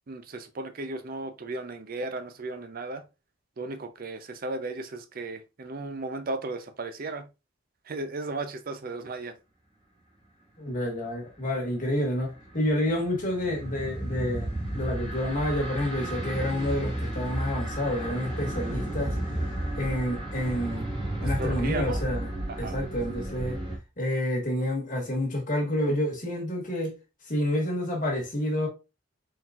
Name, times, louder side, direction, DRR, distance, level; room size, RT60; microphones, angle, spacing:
voice 1, 0.1-3.0 3.6-7.3 7.9-9.4 21.2-22.0 22.5-22.8, right 2 dB, 45° right, 0.5 m, -35 dB
voice 2, 10.6-19.2 19.7-20.9 21.2-23.6 24.0-27.0 27.3-28.7, left 1 dB, 40° left, 1.5 m, -29 dB
sound 1, 12.0-23.8, right 1 dB, 20° right, 1.4 m, -33 dB
4.3 x 3.8 x 2.4 m
head